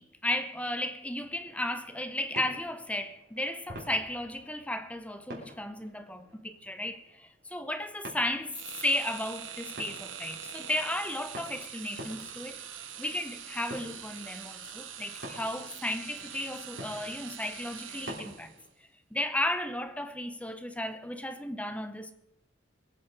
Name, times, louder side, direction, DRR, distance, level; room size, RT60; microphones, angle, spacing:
voice 1, 0.0-12.6 13.0-18.5 19.1-22.1, left 1 dB, 5° left, 0.8 m, -34 dB
sound 1, 1.2-18.7, equal, 55° right, 3.9 m, -49 dB
sound 2, 8.5-18.6, right 9 dB, 85° right, 1.4 m, -44 dB
23.0 x 8.6 x 4.7 m
head